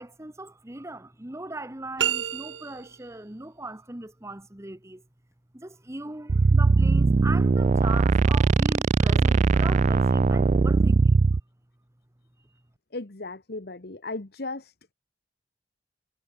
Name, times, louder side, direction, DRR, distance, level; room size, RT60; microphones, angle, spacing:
voice 1, 0.0-5.0 5.5-11.1, right 2 dB, 15° right, 1.1 m, -39 dB
sound 1, 2.0-3.1, right 10 dB, 80° right, 1.0 m, -29 dB
sound 2, 6.3-11.4, right 3 dB, 40° right, 0.4 m, -20 dB
voice 2, 12.9-14.9, left 2 dB, 55° left, 1.3 m, -36 dB
head